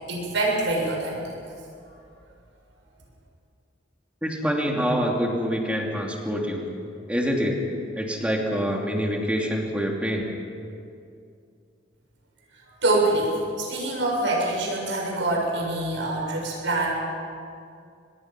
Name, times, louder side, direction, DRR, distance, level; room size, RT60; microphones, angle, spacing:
voice 1, 0.1-1.2 12.8-16.9, right 2 dB, 80° right, -2 dB, 7.5 m, -25 dB
voice 2, 4.2-6.7 7.1-7.6 7.9-10.2, equal, 5° right, 0 dB, 2.9 m, -26 dB
25.0 x 20.5 x 6.2 m, 2.4 s
head